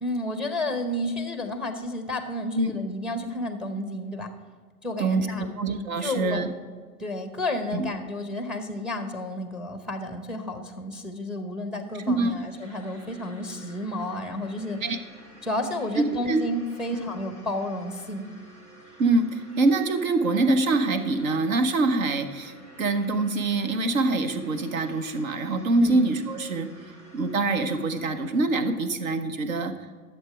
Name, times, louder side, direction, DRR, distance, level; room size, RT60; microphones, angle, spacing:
voice 1, 0.0-4.3 4.8-5.5 6.0-6.4 7.0-14.8 15.4-18.3 25.8-26.0, left 1 dB, ahead, 8 dB, 0.7 m, -31 dB
voice 2, 5.6-6.5 7.7-7.9 12.1-12.4 14.8-15.0 16.3-16.4 19.0-26.7 27.1-29.7, right 2 dB, 60° right, 9 dB, 1.1 m, -24 dB
sound 1, 11.7-28.7, equal, 80° right, 2.5 m, -51 dB
12.0 x 7.6 x 4.8 m, 1.5 s
figure-of-eight pair, 105°, 46 cm